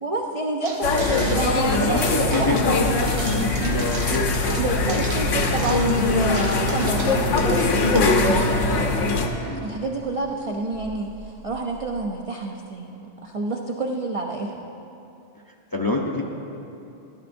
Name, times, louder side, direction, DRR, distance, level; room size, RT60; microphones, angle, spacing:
voice 1, 0.0-2.7 3.6-3.9 4.6-8.6 9.6-14.6, right 3 dB, 60° right, 1 dB, 0.3 m, -29 dB
sound 1, 0.6-8.0, right 2 dB, 40° right, 0.9 m, -35 dB
sound 2, 0.8-9.3, left 3 dB, 75° left, 1.1 m, -21 dB
voice 2, 1.7-2.6 3.3-3.9 4.2-4.3 9.4-9.6 15.7-16.2, left 2 dB, 30° left, -1 dB, 0.4 m, -27 dB
sound 3, 8.7-12.0, right 2 dB, 75° right, 1.1 m, -41 dB
13.5 x 12.5 x 2.6 m, 2.8 s
omnidirectional pair, 1.3 m